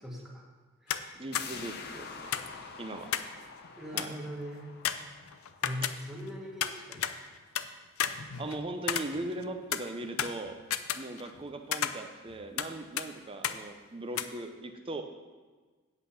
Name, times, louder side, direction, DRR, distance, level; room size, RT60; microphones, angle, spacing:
voice 1, 0.0-0.5 0.8-1.1 3.8-4.7 5.6-7.3, equal, ahead, -2 dB, 1.5 m, -41 dB
sound 1, 0.9-1.1 1.4-1.5 2.3-3.4 3.6-3.7 4.0-4.3 4.9-6.3 6.6-7.7 8.0-9.4 9.7-11.4 11.7-12.7 13.0-13.1 13.4-13.6 14.2-14.3, left 9 dB, 85° left, 0.5 m, -33 dB
voice 2, 1.1-2.5 2.7-3.1 3.9-4.2 8.4-10.6 10.9-15.0, right 2 dB, 25° right, 5 dB, 0.6 m, -39 dB
sound 2, 1.3-6.8 7.1-7.2, left 5 dB, 50° left, 1.0 m, -47 dB
8.5 x 8.2 x 5.6 m, 1.4 s
head